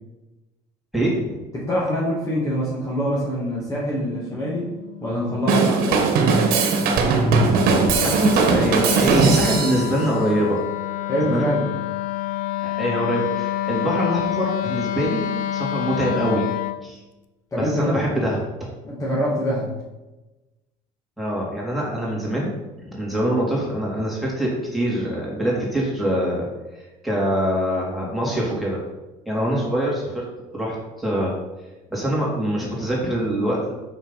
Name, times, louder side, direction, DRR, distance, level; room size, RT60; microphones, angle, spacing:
voice 1, 0.9-1.4 8.0-10.6 11.2-11.5 12.8-16.4 16.8-17.0 17.6-18.7 21.2-22.5 22.8-26.5 26.7-28.8 29.2-30.2 30.5-31.3 31.9-33.7, equal, ahead, -5 dB, 3.1 m, -24 dB
voice 2, 1.5-4.7 5.0-6.0 11.0-11.7 17.5-17.9 18.8-19.7 29.3-29.7, equal, 20° left, -6 dB, 2.2 m, -25 dB
Wind instrument woodwind instrument, 3.9-16.8, left 12 dB, 55° left, 0.6 m, -29 dB
Drum kit / Drum, 5.5-9.9, right 4 dB, 60° right, 1.5 m, -19 dB
6.1 x 5.9 x 5.6 m, 1.1 s
cardioid pair, 120°, 17 cm